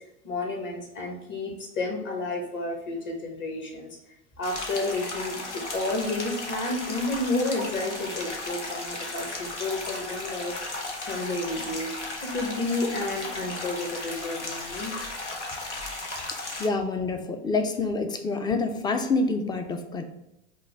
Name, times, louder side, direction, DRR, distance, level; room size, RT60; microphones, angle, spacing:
voice 1, 0.2-3.9 4.4-10.8 11.1-11.9 12.2-14.9, left 2 dB, 35° left, 1 dB, 1.2 m, -31 dB
sound 1, 4.4-16.7, left 2 dB, 85° left, 0.8 m, -35 dB
voice 2, 16.6-20.0, left 3 dB, 15° left, 6 dB, 0.4 m, -27 dB
5.2 x 2.2 x 3.3 m, 0.87 s
figure-of-eight pair, 75°, 34 cm